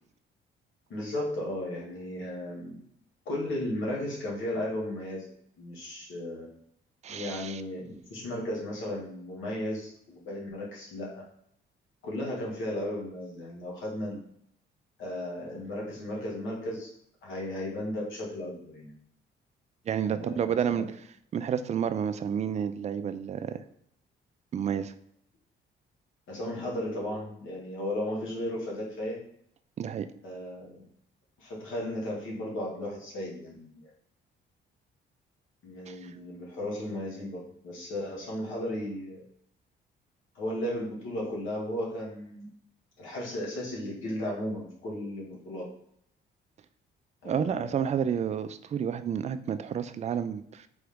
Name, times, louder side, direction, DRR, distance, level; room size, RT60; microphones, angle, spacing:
voice 1, 0.9-2.8 3.2-5.3 5.6-6.5 7.1-11.2 12.0-14.2 15.0-16.9 17.2-18.9 20.0-20.9 26.3-29.2 30.2-30.8 31.4-33.9 35.6-39.2 40.3-42.5 43.0-45.7 47.2-47.9, left 1 dB, 80° left, -3 dB, 1.7 m, -35 dB
voice 2, 7.0-7.6 19.9-20.9 21.3-23.6 24.5-24.9 29.8-30.1 35.9-36.1 47.2-50.7, right 8 dB, 35° right, 11 dB, 0.4 m, -30 dB
3.9 x 3.5 x 3.4 m, 0.70 s
cardioid pair, 90°, 20 cm